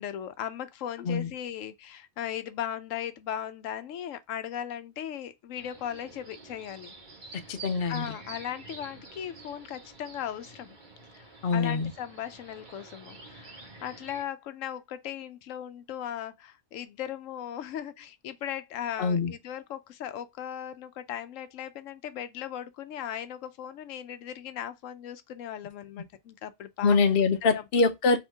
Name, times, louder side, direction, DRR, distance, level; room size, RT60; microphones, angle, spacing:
voice 1, 0.0-6.9 7.4-7.5 7.9-10.7 11.1-27.0 27.4-27.6, left 10 dB, 85° left, 1.0 m, -37 dB
sound 1, 5.6-14.2, right 3 dB, 40° right, 1.4 m, -48 dB
voice 2, 7.5-8.1 11.4-11.9 19.0-19.3 26.8-28.2, left 4 dB, 55° left, 0.8 m, -24 dB
4.4 x 3.2 x 3.3 m
omnidirectional pair, 1.3 m